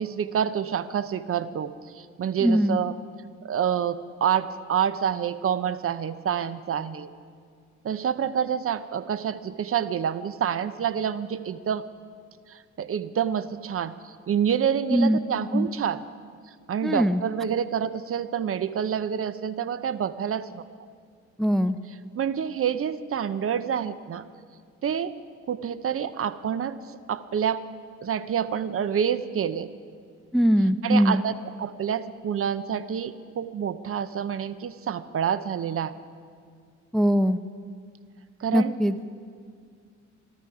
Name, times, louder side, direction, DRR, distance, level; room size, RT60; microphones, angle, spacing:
voice 1, 0.0-2.9 3.4-7.1 7.8-11.8 12.5-13.9 14.3-16.0 16.7-20.6 22.2-24.2 24.8-25.1 25.5-26.8 27.1-27.6 28.0-29.7 30.8-35.9 38.4-38.7, right 8 dB, 50° right, 14 dB, 0.7 m, -27 dB
voice 2, 2.4-2.8 14.9-15.2 15.5-15.7 16.8-17.2 21.4-21.8 30.3-31.2 36.9-37.4 38.5-39.0, equal, ahead, 12 dB, 0.4 m, -21 dB
22.5 x 12.5 x 4.8 m, 2.1 s
cardioid pair, 90°, 30 cm